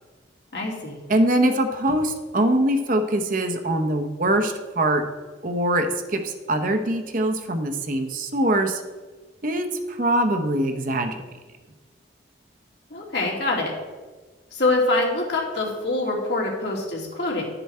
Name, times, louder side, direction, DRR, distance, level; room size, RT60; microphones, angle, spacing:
voice 1, 0.5-1.0 12.9-13.7 14.5-17.4, left 2 dB, 60° left, -2 dB, 2.5 m, -24 dB
voice 2, 1.1-5.1 5.4-8.8 9.4-11.2, right 1 dB, 45° right, 6 dB, 0.8 m, -23 dB
12.0 x 6.9 x 4.3 m, 1.3 s
head